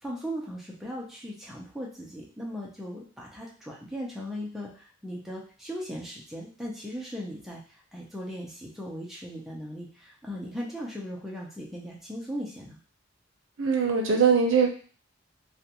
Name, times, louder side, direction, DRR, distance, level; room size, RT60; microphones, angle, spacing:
voice 1, 0.0-7.6 7.9-12.8, equal, ahead, -4 dB, 0.5 m, -38 dB
voice 2, 13.6-14.7, right 5 dB, 75° right, 2 dB, 0.6 m, -21 dB
2.4 x 2.2 x 2.8 m, 0.40 s
head